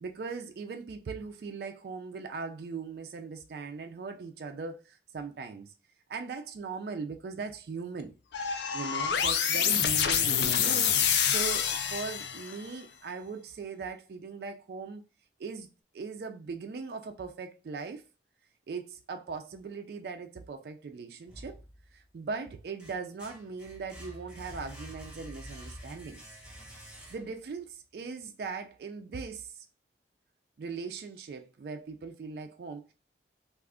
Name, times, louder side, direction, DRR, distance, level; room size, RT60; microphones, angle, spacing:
voice 1, 0.0-5.7 6.1-8.1 8.7-10.8 11.2-15.0 15.4-15.7 15.9-18.0 18.7-21.6 21.9-26.2 26.8-29.7 30.6-32.9, right 4 dB, 60° right, 0.3 m, -39 dB
sound 1, 8.3-12.6, left 8 dB, 80° left, 0.4 m, -27 dB
sound 2, 21.3-22.1 22.5-27.6, equal, 5° right, 0.9 m, -47 dB
2.4 x 2.3 x 3.5 m
head